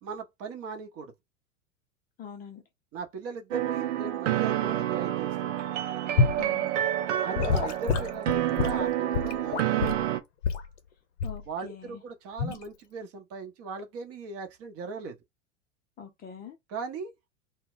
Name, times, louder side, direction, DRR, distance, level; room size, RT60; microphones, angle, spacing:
voice 1, 0.0-1.1 2.9-5.6 7.2-10.2 11.5-15.2 16.7-17.3, right 4 dB, 40° right, 0.8 m, -39 dB
voice 2, 2.2-2.6 6.4-6.7 11.2-12.0 16.0-16.6, left 7 dB, 25° left, 0.5 m, -43 dB
sound 1, 3.5-10.2, right 12 dB, 70° right, 0.6 m, -28 dB
Gurgling / Sink (filling or washing) / Liquid, 6.2-6.4 7.4-10.1 10.4-10.7 11.2-11.5 12.4-12.6, left 5 dB, 60° left, 0.7 m, -27 dB
2.2 x 2.1 x 3.8 m
hypercardioid pair, 95°, 38 cm